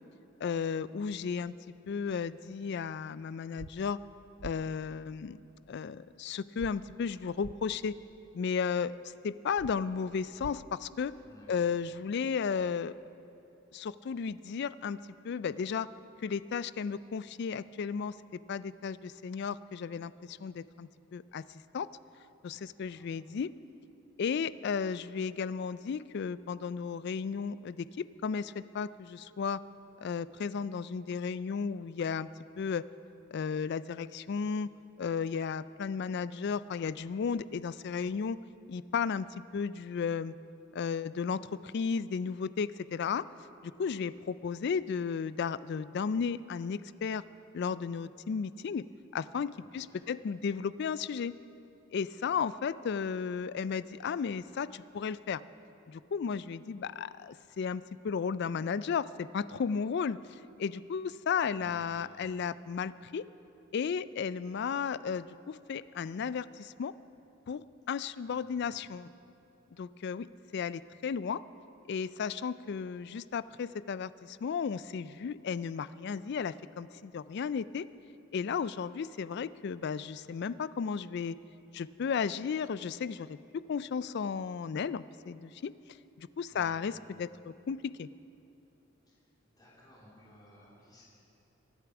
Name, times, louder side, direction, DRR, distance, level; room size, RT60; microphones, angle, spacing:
voice 1, 0.4-1.5 1.9-4.0 4.4-5.4 5.7-7.9 8.3-8.9 9.2-11.1 11.5-12.9 13.7-15.0 15.2-15.9 16.2-21.4 21.7-21.9 22.4-23.5 24.2-29.6 30.0-32.3 32.6-32.8 33.3-34.7 35.0-38.4 38.7-39.3 39.5-40.3 40.7-43.2 43.6-47.2 47.5-48.8 49.1-51.3 51.9-55.4 55.9-63.3 63.7-66.9 67.5-69.1 69.8-70.3 70.5-71.4 71.9-77.9 78.3-81.4 81.7-83.4 83.7-85.7 86.2-88.1, left 6 dB, 50° left, 17 dB, 0.3 m, -34 dB
sound 1, 3.6-3.7 4.4-4.5 6.6-6.7 7.4-7.5 9.6-9.7 10.4-10.5, right 5 dB, 65° right, 0.4 m, -44 dB
voice 2, 11.2-11.6 22.5-22.6 22.9-23.1 49.5-50.0 61.6-62.0 68.2-68.9 86.5-87.0 89.1-89.2 89.6-91.0, left 1 dB, 20° left, -8 dB, 3.0 m, -57 dB
23.0 x 8.2 x 6.0 m, 2.8 s
head